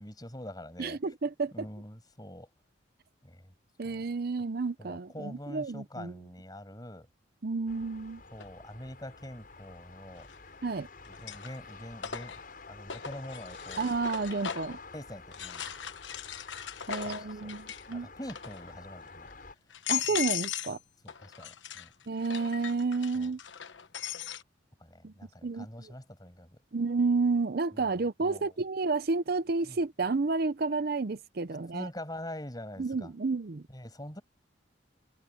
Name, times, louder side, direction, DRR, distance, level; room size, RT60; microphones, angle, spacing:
voice 1, 0.0-1.0 1.5-2.5 3.2-3.5 3.8-4.0 4.8-7.1 8.3-10.3 11.2-13.9 14.9-15.7 16.9-17.5 17.9-19.3 21.0-21.9 23.1-23.3 24.8-26.6 27.7-27.9 28.2-28.5 29.6-29.8 31.7-33.1 33.7-34.2, left 1 dB, 20° left, 7.4 m, -44 dB
voice 2, 0.8-1.7 3.8-6.1 7.4-8.2 10.6-10.9 13.8-14.8 16.9-18.1 19.9-20.8 22.1-23.4 25.0-25.1 25.4-25.9 26.7-31.9 32.8-33.6, right 4 dB, 55° right, 0.6 m, -31 dB
sound 1, 7.7-19.5, left 3 dB, 50° left, 7.3 m, -49 dB
sound 2, 8.4-8.5 10.2-10.7 11.0-14.8 15.3-17.9 18.2-18.7 19.3-19.4 19.7-20.8 21.1-24.4, left 10 dB, 75° left, 1.2 m, -38 dB
head